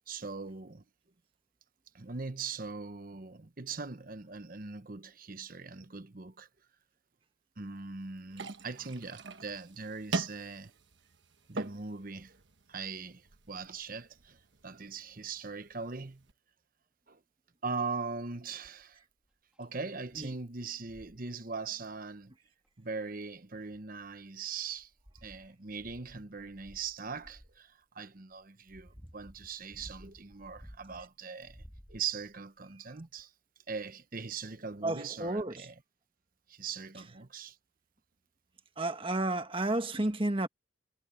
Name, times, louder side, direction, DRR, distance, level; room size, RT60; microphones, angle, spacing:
voice 1, 0.1-0.8 1.9-6.5 7.6-10.7 11.5-12.3 12.7-16.3 17.1-17.2 17.6-19.0 19.6-22.3 22.8-24.9 25.2-31.6 31.9-33.3 33.7-35.7 36.5-37.6, right 5 dB, 45° right, 1.0 m, -40 dB
sound 1, 8.3-16.3, right 3 dB, 60° right, 1.3 m, -43 dB
sound 2, 18.6-18.9 19.5-19.6 20.1-20.3 20.8-21.3 22.7-22.8 23.5-24.2 24.7-27.6 28.3-31.1 31.4-32.4 33.2-33.3, equal, 5° right, 1.6 m, -55 dB
voice 2, 34.8-35.7 38.8-40.5, right 2 dB, 25° right, 1.4 m, -31 dB
head